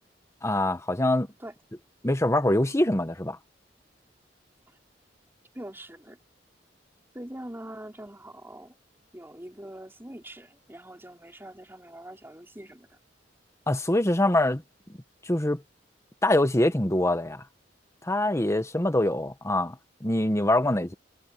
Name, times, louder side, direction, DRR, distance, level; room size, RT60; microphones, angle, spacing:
voice 1, 0.4-1.3 2.0-3.4 13.7-14.6 15.3-15.6 16.2-17.4 18.1-20.9, left 1 dB, 15° left, 1.3 m, -24 dB
voice 2, 5.5-6.2 7.1-8.7 9.1-12.9, right 1 dB, 15° right, 4.0 m, -43 dB
head